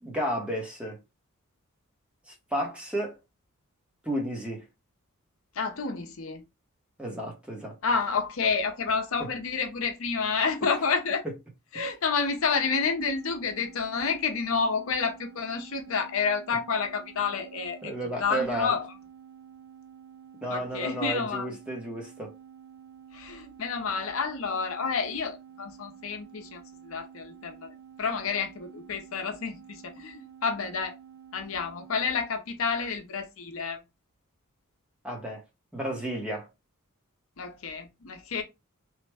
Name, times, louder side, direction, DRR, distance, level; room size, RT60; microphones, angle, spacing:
voice 1, 0.0-1.0 2.3-3.2 4.0-4.6 7.0-7.8 9.2-9.3 17.8-18.7 20.4-22.3 35.0-35.4 35.7-36.5, equal, 5° right, 0.8 m, -32 dB
voice 2, 5.6-6.4 7.8-11.2 11.7-17.9 18.2-18.9 20.5-21.5 23.1-27.7 28.0-30.9 31.3-33.8 37.4-38.4, left 5 dB, 70° left, 0.6 m, -29 dB
sound 1, 12.7-32.3, right 8 dB, 70° right, 0.9 m, -50 dB
3.1 x 2.1 x 3.3 m
head